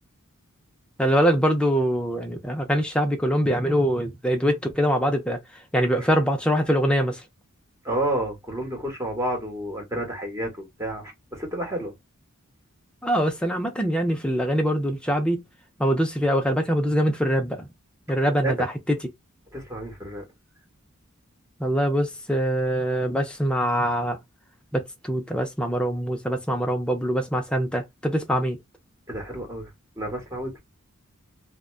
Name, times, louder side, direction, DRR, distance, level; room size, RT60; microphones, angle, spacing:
voice 1, 1.0-5.4 5.7-7.2 13.0-15.4 15.8-17.7 18.1-18.6 18.9-19.0 21.6-24.2 24.7-28.6, equal, 5° left, 0.5 m, -23 dB
voice 2, 7.8-10.5 10.8-11.9 18.4-18.5 19.5-20.2 29.1-29.7 30.0-30.5, right 1 dB, 15° right, 1.1 m, -30 dB
2.5 x 2.1 x 2.3 m
head